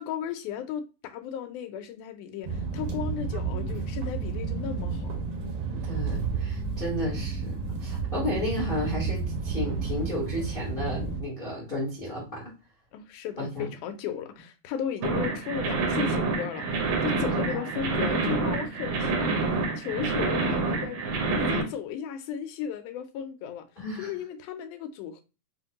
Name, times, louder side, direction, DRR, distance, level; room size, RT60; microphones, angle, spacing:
voice 1, 0.0-5.0 12.9-21.0 21.3-23.7 24.0-25.2, left 8 dB, 85° left, 2.1 m, -35 dB
sound 1, 2.4-11.2, right 4 dB, 90° right, 2.5 m, -31 dB
voice 2, 5.8-12.4 13.4-13.7 17.4-17.7 23.8-24.1, left 1 dB, 65° left, 0.5 m, -33 dB
sound 2, 15.0-21.6, right 3 dB, 75° right, 1.4 m, -27 dB
5.6 x 2.2 x 2.7 m
omnidirectional pair, 3.6 m